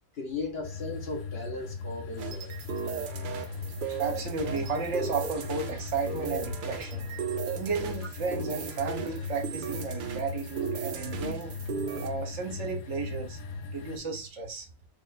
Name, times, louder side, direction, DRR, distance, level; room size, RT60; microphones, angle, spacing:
voice 1, 0.1-2.5, left 3 dB, 50° left, 1.0 m, -36 dB
sound 1, 0.6-14.0, left 4 dB, 90° left, 1.1 m, -38 dB
sound 2, 2.2-12.1, right 6 dB, 85° right, 0.4 m, -36 dB
voice 2, 3.5-7.1 7.5-11.5 12.0-13.4 13.7-14.7, right 5 dB, 60° right, 1.1 m, -33 dB
3.4 x 2.4 x 3.9 m
omnidirectional pair, 1.4 m